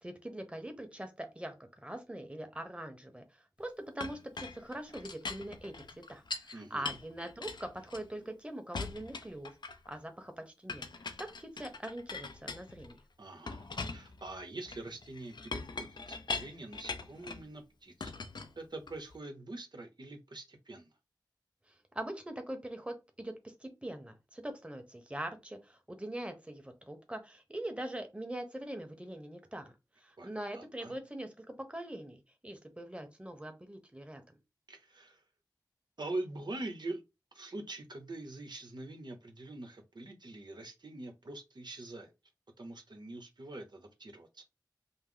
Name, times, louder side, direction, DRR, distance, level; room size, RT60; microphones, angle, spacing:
voice 1, 0.0-1.5 1.8-3.2 3.6-5.8 6.1-10.9 11.2-13.0 21.9-23.3 23.6-29.7 30.0-34.4, right 1 dB, 15° right, 1.1 m, -42 dB
Chink clink, 4.0-6.5 6.8-8.3 8.7-10.0 10.7-13.0 13.5-17.5 18.0-19.1, left 3 dB, 85° left, 0.5 m, -42 dB
voice 2, 6.5-7.0 13.2-18.1 18.6-20.9 30.2-30.9 34.7-35.2 36.0-37.0 37.3-42.1 42.6-44.4, right 2 dB, 80° right, 1.0 m, -44 dB
5.4 x 2.0 x 3.9 m
wide cardioid pair, 55°, 7 cm